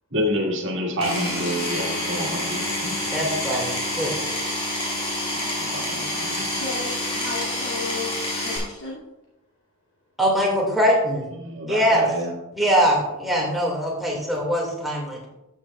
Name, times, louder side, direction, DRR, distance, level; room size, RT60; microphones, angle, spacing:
voice 1, 0.1-2.9 5.3-6.6 11.3-12.3, equal, 55° right, 0 dB, 1.9 m, -28 dB
Power tool, 1.0-8.6, left 1 dB, 25° left, 3.1 m, -27 dB
voice 2, 3.1-4.2 10.2-11.2 11.7-12.0 12.5-15.2, equal, ahead, -3 dB, 2.1 m, -22 dB
voice 3, 6.6-9.0, left 3 dB, 60° left, -7 dB, 2.5 m, -34 dB
13.0 x 7.3 x 2.4 m, 0.95 s
head